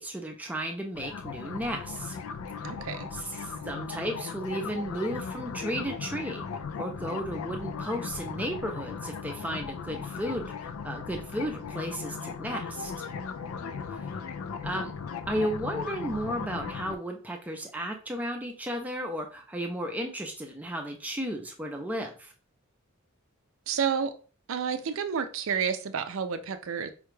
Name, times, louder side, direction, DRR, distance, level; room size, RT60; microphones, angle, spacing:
voice 1, 0.0-2.2 3.1-6.4 6.8-12.9 14.6-14.9 15.3-22.3, equal, 5° right, 3 dB, 0.5 m, -34 dB
sound 1, 0.9-17.0, left 5 dB, 80° left, 0.4 m, -37 dB
voice 2, 2.6-3.1 23.7-24.1 24.5-26.9, right 7 dB, 65° right, 9 dB, 0.4 m, -30 dB
4.9 x 2.3 x 3.1 m, 0.37 s
head